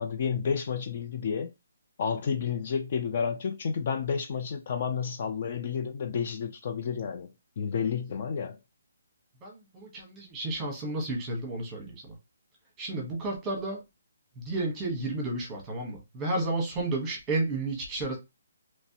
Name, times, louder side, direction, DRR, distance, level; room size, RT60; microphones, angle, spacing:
voice 1, 0.0-1.5 2.0-8.6, left 6 dB, 35° left, 0.4 m, -31 dB
voice 2, 9.4-12.2 12.8-13.8 14.4-18.2, right 2 dB, 10° right, 1.2 m, -32 dB
3.2 x 3.1 x 2.8 m
hypercardioid pair, 175°, 0 cm